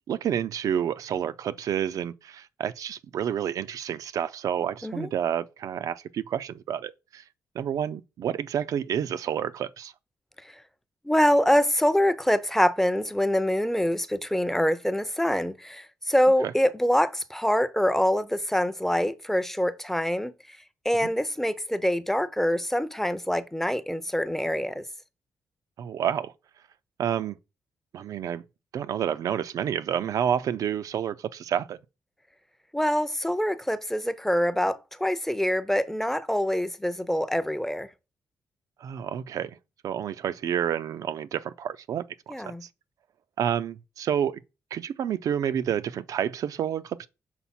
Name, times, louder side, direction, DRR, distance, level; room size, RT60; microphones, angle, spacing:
voice 1, 0.1-7.2 7.6-9.9 25.8-26.3 27.0-27.4 27.9-28.4 28.7-31.8 38.8-39.6 39.8-42.0 42.4-42.7 43.4-44.4 44.7-47.1, right 9 dB, 70° right, 0.4 m, -29 dB
voice 2, 11.0-20.6 20.8-24.8 32.7-37.9 42.3-42.6, equal, 5° left, 0.5 m, -25 dB
5.8 x 3.9 x 4.2 m
cardioid pair, 90°, 6 cm